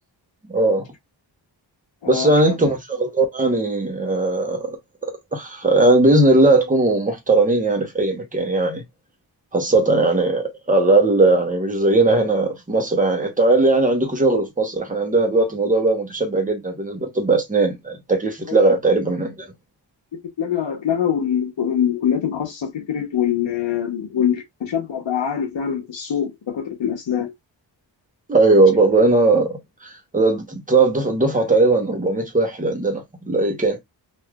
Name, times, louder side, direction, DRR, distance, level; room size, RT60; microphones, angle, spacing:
voice 1, 0.5-0.8 2.1-4.8 5.0-8.8 9.5-19.5 28.3-33.8, right 2 dB, 15° right, 0.9 m, -18 dB
voice 2, 2.0-2.5 20.4-27.3, left 9 dB, 75° left, 0.9 m, -24 dB
3.3 x 2.6 x 2.3 m
wide cardioid pair, 145°, 46 cm